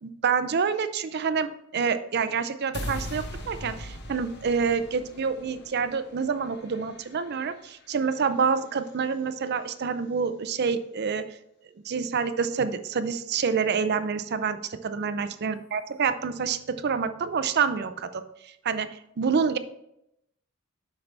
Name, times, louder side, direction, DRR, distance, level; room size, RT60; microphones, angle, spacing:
voice 1, 0.0-11.2 11.9-18.2 18.6-18.9 19.2-19.6, right 6 dB, 50° right, 11 dB, 0.5 m, -27 dB
sound 1, 2.7-8.9, left 1 dB, 55° left, 1.1 m, -41 dB
8.0 x 5.7 x 3.3 m, 0.80 s
head